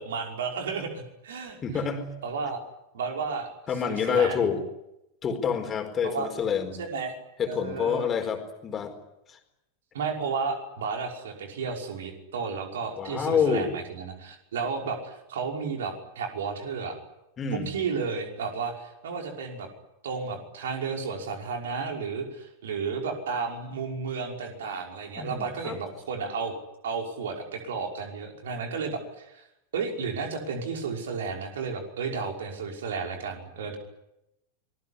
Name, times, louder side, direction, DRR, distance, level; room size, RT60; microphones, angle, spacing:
voice 1, 0.0-1.8 2.2-2.6 2.9-3.5 3.8-4.4 6.0-6.3 6.8-7.2 7.5-8.1 9.9-17.0 17.5-19.7 20.0-26.5 26.8-29.4 29.7-33.8, right 5 dB, 60° right, 3 dB, 5.5 m, -32 dB
voice 2, 1.6-2.0 3.7-4.6 5.2-6.8 7.4-8.9 9.3-9.4 13.0-13.7 17.4-17.7 25.2-25.8, left 7 dB, 25° left, 6 dB, 4.6 m, -27 dB
26.5 x 21.0 x 10.0 m, 0.87 s
figure-of-eight pair, 90°, 0 cm